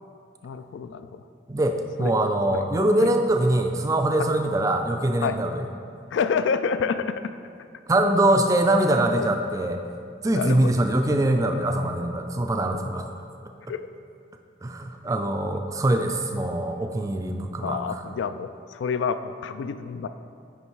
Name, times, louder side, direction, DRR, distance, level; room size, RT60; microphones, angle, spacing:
voice 1, 0.4-1.2 2.0-2.1 2.5-2.6 3.0-3.1 4.2-4.3 5.2-5.4 6.1-7.3 9.1-9.3 10.3-10.8 13.7-13.8 17.6-20.1, left 6 dB, 90° left, 11 dB, 0.3 m, -28 dB
voice 2, 1.5-5.6 7.9-9.8 10.2-13.1 14.6-18.0, right 1 dB, 20° right, 5 dB, 0.3 m, -23 dB
9.6 x 3.3 x 4.6 m, 2.4 s
head